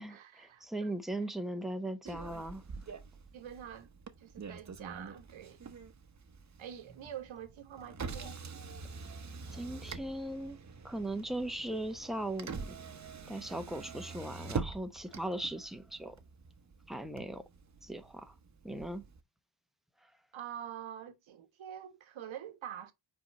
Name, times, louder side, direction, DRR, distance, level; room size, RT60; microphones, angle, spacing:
voice 1, 0.0-0.9 3.3-3.9 4.2-5.6 6.6-8.4 20.3-22.9, right 9 dB, 80° right, 1.3 m, -46 dB
voice 2, 0.6-2.6 9.5-10.6 10.8-12.8 13.3-16.2 16.9-17.4 17.8-18.3 18.6-19.0, right 1 dB, ahead, 0.9 m, -38 dB
Motor vehicle (road), 2.0-19.2, right 4 dB, 35° right, 1.0 m, -45 dB
5.1 x 4.6 x 4.1 m
cardioid pair, 100°, 46 cm